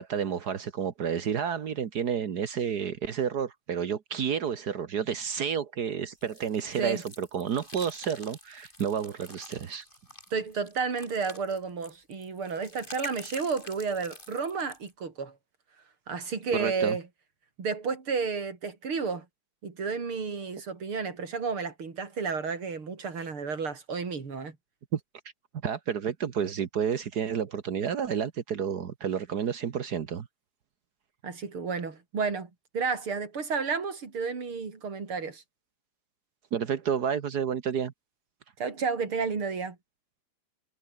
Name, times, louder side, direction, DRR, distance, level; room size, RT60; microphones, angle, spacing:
voice 1, 0.0-9.9 16.5-16.9 24.9-25.0 25.6-30.3 36.5-37.9, right 7 dB, 65° right, 0.9 m, -30 dB
sound 1, 6.2-14.9, left 1 dB, 15° left, 6.9 m, -48 dB
voice 2, 10.3-15.4 16.1-17.0 17.6-19.3 19.6-24.6 31.2-35.4 38.6-39.8, right 5 dB, 45° right, 4.5 m, -32 dB
omnidirectional pair, 3.5 m